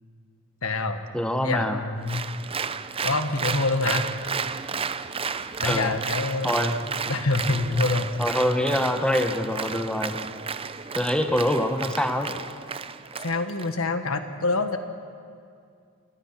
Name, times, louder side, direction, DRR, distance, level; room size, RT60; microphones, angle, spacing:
voice 1, 0.6-1.0 1.4-2.2 3.0-4.1 5.6-6.5 7.1-8.1 13.2-14.8, left 3 dB, 75° left, 8 dB, 1.5 m, -26 dB
voice 2, 1.1-1.8 5.6-6.0 6.4-6.8 8.2-10.3 10.9-12.4, left 1 dB, 5° left, 5 dB, 1.1 m, -25 dB
Applause, 2.1-13.7, right 5 dB, 25° right, 0.6 m, -32 dB
28.0 x 21.5 x 6.0 m, 2.3 s
head